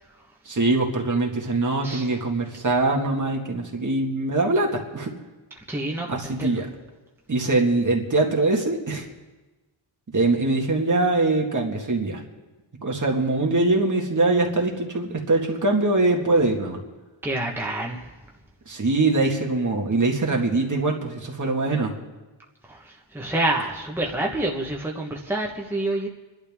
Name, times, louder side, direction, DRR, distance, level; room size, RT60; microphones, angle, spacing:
voice 1, 0.5-5.1 6.1-6.7 7.3-9.1 10.1-12.2 12.8-16.8 18.7-21.9, right 2 dB, 40° right, 1 dB, 1.9 m, -23 dB
voice 2, 5.7-6.6 17.2-18.1 22.7-26.1, right 1 dB, 5° right, -1 dB, 1.2 m, -28 dB
28.0 x 11.5 x 3.6 m, 1.2 s
wide cardioid pair, 175°, 47 cm